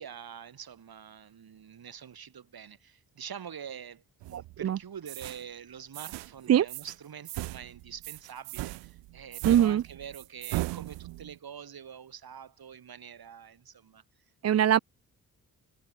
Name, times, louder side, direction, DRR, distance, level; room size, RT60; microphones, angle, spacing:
voice 1, 0.0-14.0 14.5-14.7, right 8 dB, 60° right, 4.4 m, -45 dB
sound 1, 4.2-4.7 5.1-5.4 5.9-6.4 6.7-7.0 7.3-11.4, right 20 dB, 80° right, 1.1 m, -38 dB
voice 2, 4.3-4.8 6.5-6.7 9.4-9.8 14.4-14.8, right 10 dB, 40° right, 0.5 m, -22 dB
hypercardioid pair, 45°, 42 cm